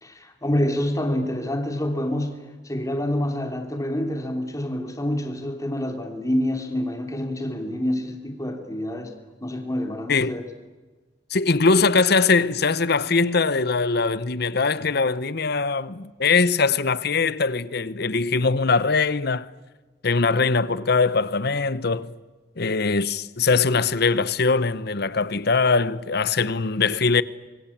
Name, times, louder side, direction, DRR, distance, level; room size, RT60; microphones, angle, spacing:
voice 1, 0.0-2.3 2.6-9.1 9.4-10.4, left 1 dB, 20° left, 3.1 m, -27 dB
voice 2, 11.3-19.5 20.0-22.1 22.6-27.2, left 4 dB, 60° left, 1.0 m, -21 dB
25.5 x 24.0 x 8.7 m
head